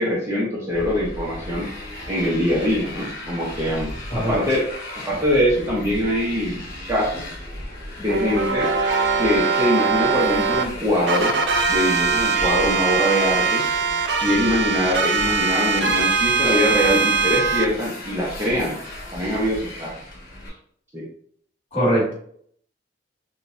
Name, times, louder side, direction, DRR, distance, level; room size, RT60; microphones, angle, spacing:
voice 1, 0.0-1.7 2.1-4.6 5.0-6.6 6.9-7.3 8.0-8.7 9.2-11.4 11.7-13.7 14.2-18.8 19.1-19.9 20.9-21.0, equal, 15° right, -6 dB, 0.8 m, -23 dB
Motorcycle, 0.7-20.5, left 1 dB, 50° left, 1.3 m, -36 dB
sound 1, 8.1-10.6 11.1-17.6, right 4 dB, 60° right, 0.4 m, -21 dB
voice 2, 21.7-22.1, right 1 dB, 30° left, -6 dB, 1.6 m, -21 dB
6.1 x 2.3 x 2.6 m, 0.62 s
head